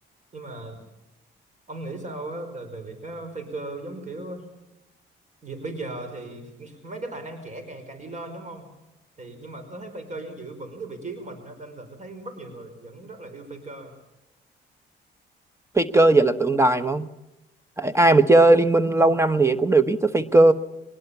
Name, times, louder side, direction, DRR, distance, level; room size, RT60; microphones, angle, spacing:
voice 1, 0.3-0.8 1.7-4.5 5.4-8.7 9.2-14.0, right 2 dB, 40° right, 8 dB, 5.1 m, -37 dB
voice 2, 15.7-17.1 17.8-20.5, right 2 dB, 15° right, 13 dB, 1.2 m, -18 dB
22.5 x 20.5 x 7.2 m, 0.94 s
cardioid pair, 90°, 20 cm